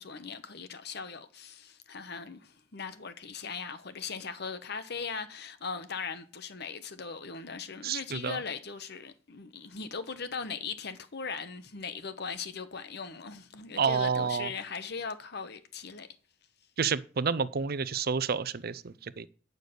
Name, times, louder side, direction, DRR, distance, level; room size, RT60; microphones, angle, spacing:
voice 1, 0.0-16.1, left 5 dB, 60° left, 1.1 m, -39 dB
voice 2, 7.8-8.4 13.8-14.5 16.8-19.3, right 6 dB, 55° right, 0.6 m, -29 dB
9.5 x 6.6 x 6.7 m
head